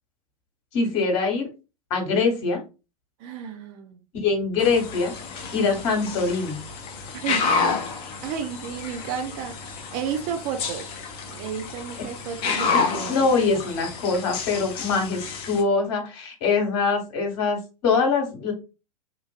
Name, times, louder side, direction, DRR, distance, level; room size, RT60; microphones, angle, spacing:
voice 1, 0.7-1.5 1.9-2.6 4.1-5.1 5.5-6.6 12.7-18.5, left 4 dB, 45° left, 1.3 m, -23 dB
voice 2, 3.2-4.0 7.1-7.9 8.2-10.9 11.3-13.6, right 8 dB, 35° right, 0.5 m, -33 dB
sound 1, 4.6-15.6, left 5 dB, 30° left, 0.6 m, -30 dB
3.0 x 2.5 x 2.4 m
figure-of-eight pair, 95°, 20 cm